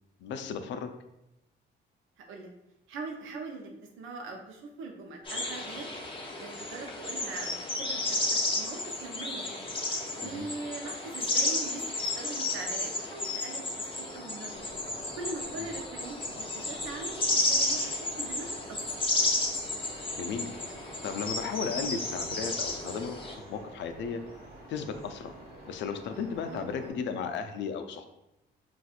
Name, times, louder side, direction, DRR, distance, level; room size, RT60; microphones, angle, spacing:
voice 1, 0.2-0.9 10.2-10.5 20.1-20.5 21.0-24.2 24.7-25.3 25.6-28.0, left 6 dB, 70° left, 8 dB, 0.4 m, -35 dB
voice 2, 2.2-2.5 2.9-3.7 4.0-5.9 6.4-8.2 8.5-9.7 10.1-11.8 12.2-14.7 15.2-18.8 26.4-26.7, right 3 dB, 80° right, 2 dB, 0.6 m, -41 dB
sound 1, 5.3-23.3, left 2 dB, 25° left, 0.7 m, -32 dB
sound 2, 14.5-26.9, right 1 dB, 50° right, 1.3 m, -49 dB
4.1 x 2.4 x 2.4 m, 0.89 s
cardioid pair, 90°, 20 cm